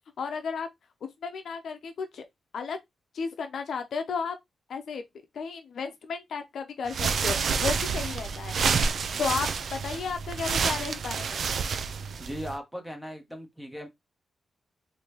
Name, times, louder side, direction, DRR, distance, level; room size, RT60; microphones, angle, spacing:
voice 1, 0.2-0.7 1.2-2.2 2.5-2.8 3.1-4.4 4.7-5.0 5.3-8.5 9.2-11.5, left 5 dB, 60° left, 0.7 m, -33 dB
sound 1, 6.9-12.6, right 5 dB, 55° right, 0.4 m, -29 dB
voice 2, 12.2-13.9, equal, ahead, 0.9 m, -38 dB
3.8 x 2.8 x 3.1 m
wide cardioid pair, 165°, 0 cm